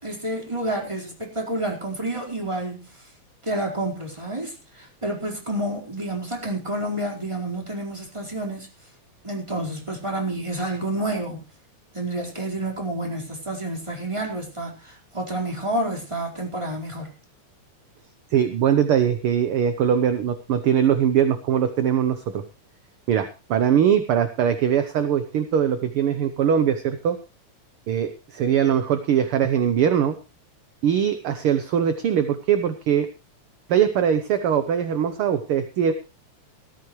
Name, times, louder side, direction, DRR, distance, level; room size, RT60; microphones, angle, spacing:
voice 1, 0.0-2.9 3.4-8.7 9.2-11.4 11.9-17.1, right 1 dB, 10° right, 0 dB, 4.2 m, -29 dB
voice 2, 18.3-22.4 23.1-27.2 27.9-30.2 30.8-33.1 33.7-35.9, right 8 dB, 65° right, 9 dB, 1.5 m, -21 dB
18.0 x 14.5 x 3.2 m, 0.30 s
omnidirectional pair, 3.5 m